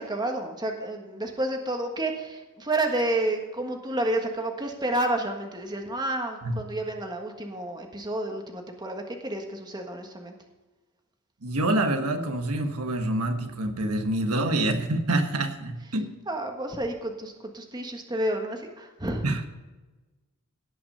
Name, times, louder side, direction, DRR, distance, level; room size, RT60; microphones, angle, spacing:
voice 1, 0.0-10.3 16.3-19.2, right 1 dB, 20° right, 3 dB, 1.5 m, -30 dB
voice 2, 11.4-16.1 19.2-19.4, right 1 dB, 85° right, 5 dB, 1.4 m, -26 dB
17.5 x 5.8 x 5.5 m, 1.1 s
head